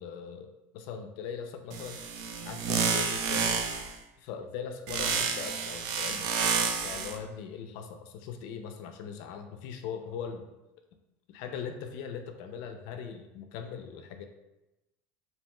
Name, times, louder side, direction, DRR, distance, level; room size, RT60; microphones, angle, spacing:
voice 1, 0.0-2.0 2.5-3.6 4.2-10.4 11.3-14.2, left 7 dB, 70° left, 6 dB, 0.4 m, -40 dB
sound 1, 1.7-4.0 4.9-7.2, right 6 dB, 70° right, 0.4 m, -30 dB
2.7 x 2.2 x 2.9 m, 0.96 s
supercardioid pair, 115°, 7 cm